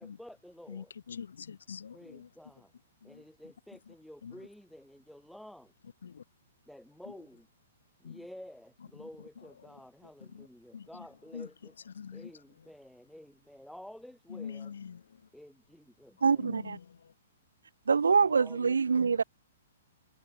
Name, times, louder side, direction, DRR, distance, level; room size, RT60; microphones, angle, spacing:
voice 1, 0.0-0.9 1.9-2.7 3.0-5.7 6.7-7.5 8.0-11.7 12.1-14.7 15.3-16.7 18.2-19.2, left 1 dB, ahead, 3.4 m, -51 dB
voice 2, 0.7-2.3 3.0-3.2 3.9-4.0 4.2-4.5 6.0-6.2 7.1-7.2 8.0-8.3 8.9-9.8 10.2-10.5 10.7-11.1 11.3-11.5 11.9-12.3 12.6-12.7 14.3-15.3 16.4-17.1, left 7 dB, 70° left, 2.9 m, -45 dB
voice 3, 16.2-16.8 17.9-19.2, right 5 dB, 75° right, 1.1 m, -25 dB
figure-of-eight pair, 120°, 0 cm